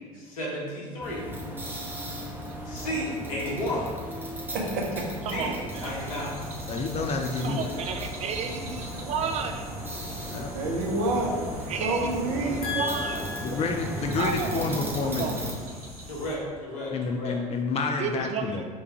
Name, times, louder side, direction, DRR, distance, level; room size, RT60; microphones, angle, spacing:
voice 1, 0.1-1.3 2.6-3.9 5.3-6.3 12.6-13.8 16.1-17.4, left 1 dB, 70° left, -4 dB, 1.3 m, -33 dB
sound 1, 1.0-15.5, equal, 10° right, 0.9 m, -36 dB
voice 2, 4.5-5.1 10.0-10.1 10.5-11.4 11.8-12.7, right 2 dB, 55° right, -1 dB, 0.9 m, -28 dB
voice 3, 5.2-5.9 7.4-9.7 11.7-13.2 14.2-14.7 15.0-15.4 18.0-18.6, right 6 dB, 35° right, 5 dB, 0.4 m, -32 dB
sound 2, 5.7-16.4, equal, 80° right, 0.8 m, -44 dB
voice 4, 6.7-7.8 10.3-10.5 13.4-15.3 16.9-18.6, left 4 dB, 35° left, 3 dB, 0.4 m, -29 dB
3.4 x 3.1 x 4.6 m, 1.5 s
figure-of-eight pair, 65°, 19 cm